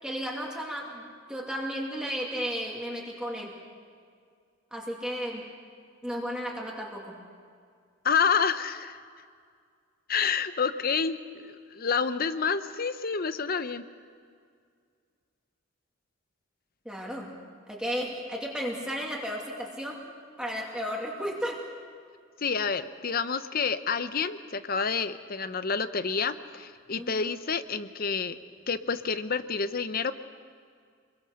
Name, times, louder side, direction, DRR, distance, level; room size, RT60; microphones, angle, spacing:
voice 1, 0.0-3.6 4.7-5.4 6.0-7.2 16.8-17.4 17.7-20.0 20.4-21.6 27.0-27.3, equal, 5° right, -2 dB, 2.7 m, -34 dB
voice 2, 8.0-9.0 10.1-13.8 22.4-28.4 28.7-30.1, left 5 dB, 50° left, 12 dB, 0.8 m, -28 dB
28.0 x 22.0 x 6.6 m, 2.1 s
head